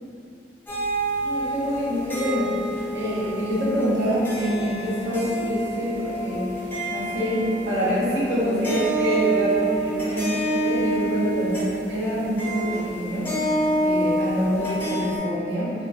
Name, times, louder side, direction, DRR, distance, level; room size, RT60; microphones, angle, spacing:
sound 1, 0.7-15.2, right 1 dB, 10° left, 0.5 m, -28 dB
voice 1, 1.2-13.3 13.8-15.7, equal, 75° right, -9 dB, 0.9 m, -26 dB
3.0 x 2.4 x 2.3 m, 2.7 s
head